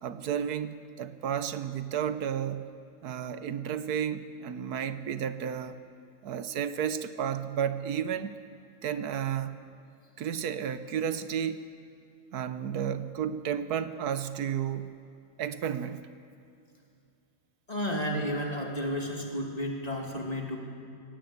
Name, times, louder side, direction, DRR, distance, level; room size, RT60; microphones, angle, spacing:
voice 1, 0.0-2.7 3.0-5.8 6.2-8.3 8.8-9.6 10.2-11.6 12.3-15.0 15.4-16.0, right 8 dB, 65° right, 11 dB, 1.4 m, -32 dB
voice 2, 17.7-20.6, equal, 20° left, 0 dB, 2.8 m, -32 dB
22.5 x 18.5 x 8.1 m, 2.5 s
omnidirectional pair, 1.9 m